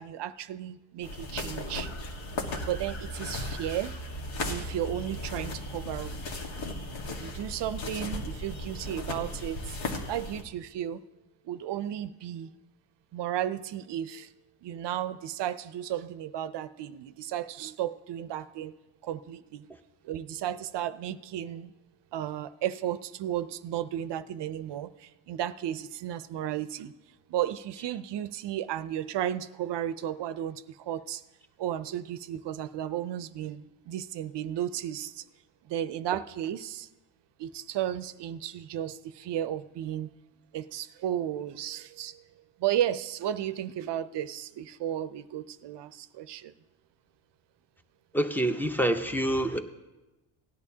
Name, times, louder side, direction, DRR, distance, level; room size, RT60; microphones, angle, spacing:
voice 1, 0.0-1.9 2.7-4.0 4.5-6.1 7.2-9.8 10.1-11.0 11.4-12.5 13.1-14.3 14.6-18.7 19.0-19.7 20.0-21.7 22.1-26.9 27.3-31.2 31.6-35.2 35.7-36.9 37.4-40.1 40.5-42.2 42.6-46.5, right 11 dB, 60° right, 14 dB, 0.6 m, -34 dB
sound 1, 1.0-10.4, left 1 dB, 70° left, 1.7 m, -36 dB
voice 2, 48.1-49.6, right 1 dB, 5° left, 7 dB, 0.6 m, -26 dB
17.5 x 11.0 x 2.8 m, 1.1 s
cardioid pair, 110°, 48 cm